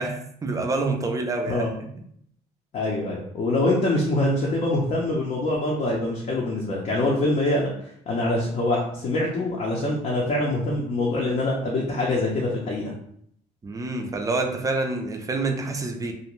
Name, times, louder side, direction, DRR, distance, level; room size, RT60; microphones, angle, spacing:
voice 1, 0.0-1.9 13.6-16.1, right 3 dB, 20° right, 4 dB, 0.4 m, -27 dB
voice 2, 2.7-7.7 8.1-12.9, left 2 dB, 45° left, -3 dB, 0.6 m, -24 dB
2.5 x 2.1 x 3.0 m, 0.68 s
cardioid pair, 110°, 17 cm